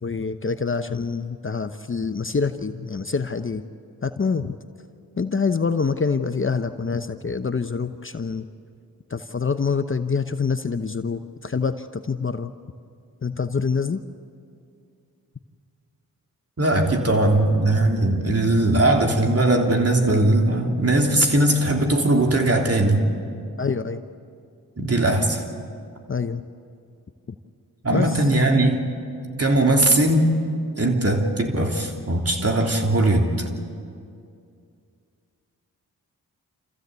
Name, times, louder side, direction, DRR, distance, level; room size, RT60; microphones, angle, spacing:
voice 1, 0.0-3.6 4.0-4.5 5.2-8.4 9.1-11.7 12.1-12.5 13.2-14.0 23.6-24.0 26.1-26.4 27.9-28.1, left 5 dB, 30° left, 10 dB, 0.9 m, -25 dB
voice 2, 16.6-23.1 24.8-25.4 27.8-28.8 29.4-30.4 30.8-33.3, right 1 dB, 40° right, 2 dB, 3.4 m, -19 dB
27.0 x 14.5 x 8.2 m, 2.4 s
supercardioid pair, 40°, 38 cm